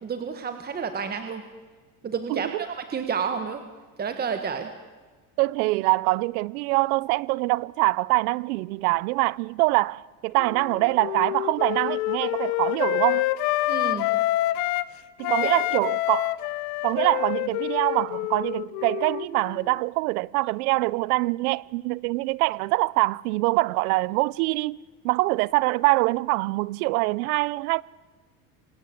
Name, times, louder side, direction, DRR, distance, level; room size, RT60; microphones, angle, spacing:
voice 1, 0.0-1.4 2.0-3.6 4.0-4.7 13.7-14.1 15.4-15.5, right 6 dB, 20° right, 1.5 m, -30 dB
voice 2, 2.3-2.6 5.4-13.3 15.2-16.4 16.8-24.8 25.0-27.8, right 23 dB, 75° right, 0.7 m, -24 dB
Wind instrument woodwind instrument, 10.4-14.9 15.2-19.7, left 17 dB, 75° left, 1.3 m, -27 dB
26.0 x 19.5 x 8.5 m
supercardioid pair, 140°, 44 cm